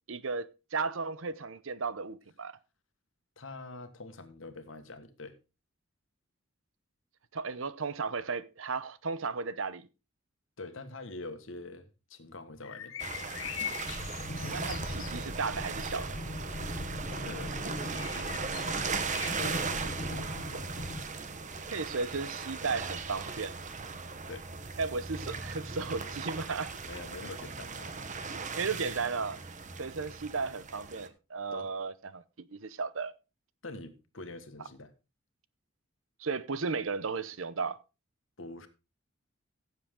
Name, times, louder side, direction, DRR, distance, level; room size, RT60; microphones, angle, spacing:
voice 1, 0.1-2.5 7.3-9.9 14.3-16.2 21.7-23.6 24.8-26.7 28.5-33.1 36.2-37.8, right 4 dB, 80° right, 0.8 m, -35 dB
voice 2, 3.4-5.4 10.6-12.9 17.0-18.8 19.2-20.6 24.3-24.5 26.8-28.3 31.5-31.7 33.6-34.9 38.4-38.7, left 2 dB, 70° left, 1.6 m, -45 dB
sound 1, 12.6-15.2 17.6-19.6, left 10 dB, 90° left, 0.7 m, -42 dB
sound 2, 13.0-31.1, right 4 dB, 40° right, 1.1 m, -38 dB
sound 3, 13.8-21.0, left 1 dB, 45° left, 1.1 m, -40 dB
15.5 x 7.5 x 3.7 m
head